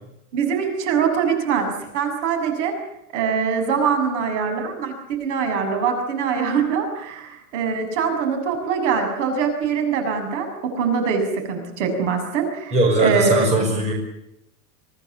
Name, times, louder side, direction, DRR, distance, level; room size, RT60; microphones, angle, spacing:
voice 1, 0.3-2.7 3.1-10.5 10.7-13.3, right 6 dB, 50° right, 6 dB, 7.0 m, -23 dB
voice 2, 12.7-13.9, right 2 dB, 15° right, 1 dB, 5.3 m, -19 dB
25.0 x 18.5 x 8.6 m, 0.81 s
supercardioid pair, 175°, 45 cm